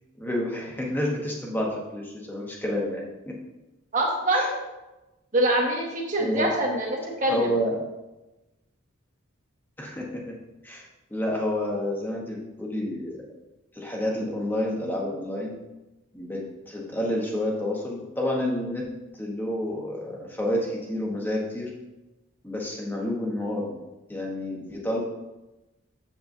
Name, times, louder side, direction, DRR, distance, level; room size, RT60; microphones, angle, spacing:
voice 1, 0.2-3.3 4.3-4.5 6.2-6.5 7.3-7.8 9.8-10.4 10.6-13.3 13.7-15.5 16.1-21.7 22.4-23.8 24.1-25.0, left 1 dB, 10° left, -2 dB, 1.0 m, -29 dB
voice 2, 3.9-4.6 5.3-7.5, right 1 dB, 35° right, -1 dB, 1.3 m, -24 dB
7.4 x 7.2 x 2.6 m, 1.0 s
head